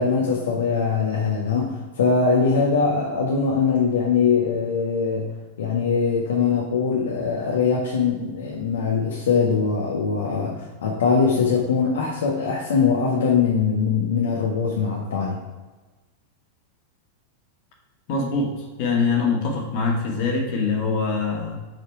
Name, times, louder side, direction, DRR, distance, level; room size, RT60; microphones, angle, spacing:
voice 1, 0.0-5.3 5.6-15.4, left 5 dB, 65° left, -2 dB, 1.3 m, -22 dB
voice 2, 18.1-18.5 18.8-21.6, left 4 dB, 45° left, 1 dB, 1.9 m, -23 dB
7.7 x 4.9 x 4.8 m, 1.2 s
figure-of-eight pair, 90°, 0 cm